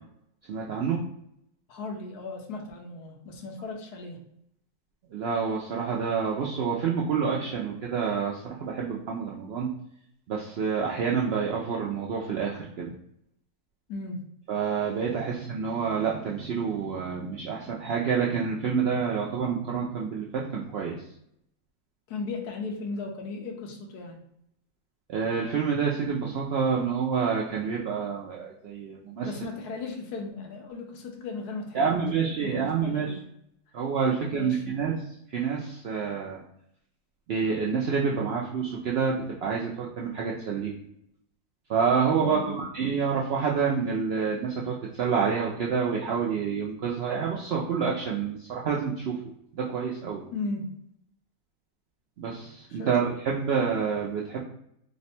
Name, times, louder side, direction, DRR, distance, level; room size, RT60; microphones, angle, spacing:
voice 1, 0.5-1.0 5.1-9.7 10.3-12.9 14.5-21.0 25.1-29.4 31.7-33.2 33.7-34.9 35.3-36.4 37.3-40.7 41.7-49.2 49.5-50.2 52.2-54.4, right 6 dB, 80° right, -3 dB, 0.5 m, -28 dB
voice 2, 1.7-4.2 13.9-14.3 22.1-24.2 29.2-33.2 34.3-34.6 42.2-42.6 50.3-50.7 52.7-53.0, left 3 dB, 90° left, 3 dB, 1.3 m, -36 dB
3.4 x 2.1 x 4.2 m, 0.75 s
omnidirectional pair, 1.6 m